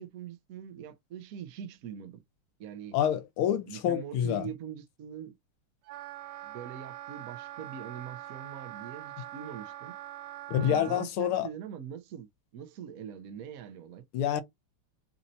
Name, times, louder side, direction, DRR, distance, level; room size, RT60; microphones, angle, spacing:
voice 1, 0.0-2.2 2.6-3.0 3.7-5.3 6.4-10.0 10.6-12.3 12.5-14.1, right 8 dB, 65° right, 0.8 m, -43 dB
voice 2, 2.9-4.5 10.5-11.5 14.1-14.4, left 9 dB, 85° left, 1.6 m, -27 dB
Wind instrument woodwind instrument, 5.8-11.1, right 13 dB, 85° right, 1.5 m, -43 dB
4.2 x 2.7 x 4.2 m
omnidirectional pair, 2.4 m